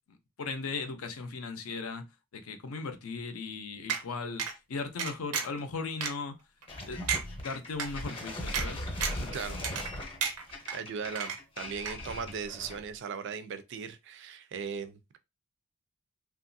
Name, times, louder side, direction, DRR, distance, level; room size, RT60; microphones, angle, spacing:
voice 1, 0.1-2.1 2.3-6.4 6.9-7.0 7.4-9.8, left 4 dB, 70° left, 0.5 m, -38 dB
sound 1, 3.9-4.0 4.4-4.5 5.0-5.6 6.0-6.1 6.6-6.7 7.1-7.2 7.8-7.9 8.5-8.7 9.0-9.3 9.6-9.9 10.2-10.8 11.2-11.6 11.9-12.0, right 7 dB, 90° right, 0.6 m, -32 dB
sound 2, 6.7-12.9, left 1 dB, 25° left, 0.7 m, -39 dB
voice 2, 10.7-15.2, right 6 dB, 55° right, 0.4 m, -38 dB
2.9 x 2.4 x 2.6 m
head